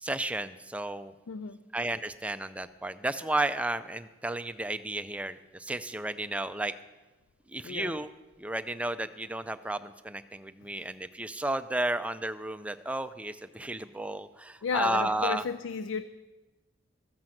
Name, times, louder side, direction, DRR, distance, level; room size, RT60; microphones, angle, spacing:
voice 1, 0.0-1.1 1.7-6.7 7.5-8.1 8.4-15.4, right 1 dB, 5° right, 11 dB, 0.4 m, -33 dB
voice 2, 1.3-1.6 7.6-7.9 10.8-10.9 14.6-16.0, left 6 dB, 75° left, 13 dB, 0.4 m, -33 dB
14.0 x 7.3 x 7.7 m, 1.2 s
head